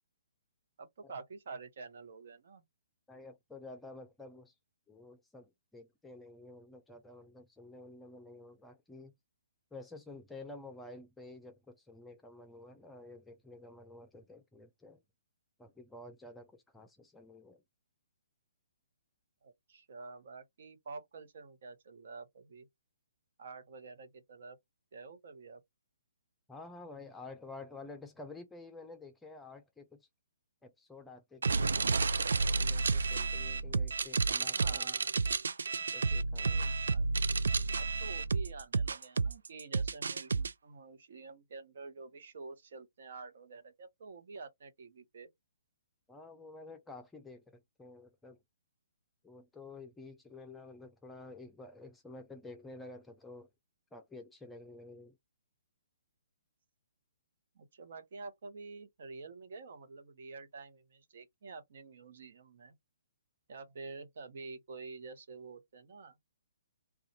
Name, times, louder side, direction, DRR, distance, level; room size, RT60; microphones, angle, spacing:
voice 1, 0.8-2.6 19.4-22.7 23.4-24.6 24.9-25.6 34.4-35.1 36.8-37.1 37.8-45.3 57.5-62.7 63.5-66.2, right 4 dB, 60° right, 1.0 m, -48 dB
voice 2, 3.1-4.5 4.9-9.1 9.7-15.0 15.6-17.6 26.5-30.1 30.6-32.0 32.2-34.9 35.8-36.7 46.1-48.4 49.2-53.5 53.9-55.2, left 2 dB, 5° left, 0.6 m, -51 dB
sound 1, 31.4-40.5, right 4 dB, 75° right, 0.4 m, -31 dB
2.6 x 2.3 x 4.1 m
hypercardioid pair, 140°, 0 cm